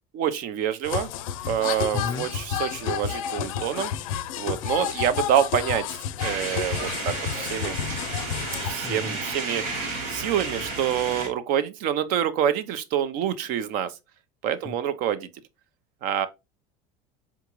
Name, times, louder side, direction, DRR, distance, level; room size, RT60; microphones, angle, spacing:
voice 1, 0.1-1.1 1.5-3.9 4.4-7.8 8.7-9.6 10.1-13.9 14.4-15.3 16.0-16.3, right 9 dB, 55° right, 0.6 m, -26 dB
sound 1, 0.8-8.7, left 9 dB, 85° left, 0.4 m, -30 dB
voice 2, 1.9-2.3 8.8-9.2 14.6-14.7, left 5 dB, 20° left, 0.4 m, -33 dB
sound 2, 6.2-11.3, right 3 dB, 90° right, 1.6 m, -32 dB
3.6 x 3.5 x 3.0 m
supercardioid pair, 120°, 17 cm